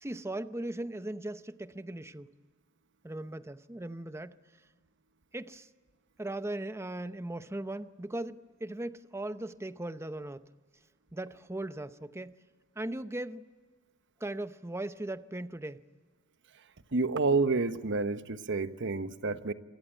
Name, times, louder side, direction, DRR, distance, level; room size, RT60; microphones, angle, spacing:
voice 1, 0.0-2.3 3.0-4.4 5.3-5.7 6.2-10.4 11.1-12.4 12.8-13.4 14.2-15.8, right 1 dB, 15° right, 0.7 m, -38 dB
voice 2, 16.9-19.5, right 3 dB, 60° right, 1.1 m, -29 dB
28.0 x 23.5 x 9.0 m
head